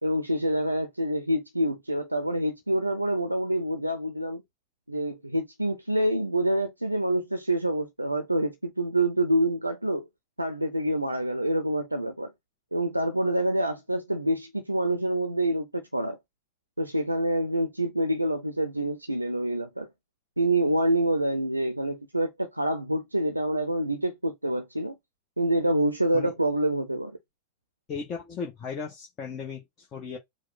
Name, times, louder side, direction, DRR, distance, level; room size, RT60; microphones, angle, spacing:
voice 1, 0.0-4.4 4.9-10.1 10.4-12.3 12.7-16.2 16.8-19.9 20.4-25.0 25.4-27.2, right 1 dB, 85° right, 0.6 m, -27 dB
voice 2, 27.9-30.2, left 5 dB, 30° left, 1.1 m, -36 dB
4.7 x 2.3 x 4.1 m
figure-of-eight pair, 90°, 0 cm